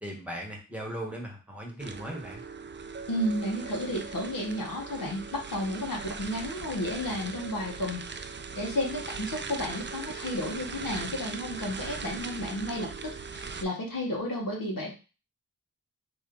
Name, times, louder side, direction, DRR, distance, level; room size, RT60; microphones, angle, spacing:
voice 1, 0.0-2.4, right 1 dB, 5° right, -1 dB, 1.2 m, -38 dB
sound 1, 1.8-13.6, right 5 dB, 35° right, 0.4 m, -39 dB
voice 2, 3.1-8.0 8.5-12.9 13.3-14.9, left 1 dB, 65° left, -1 dB, 1.1 m, -32 dB
3.0 x 2.7 x 3.8 m, 0.33 s
cardioid pair, 50°, 36 cm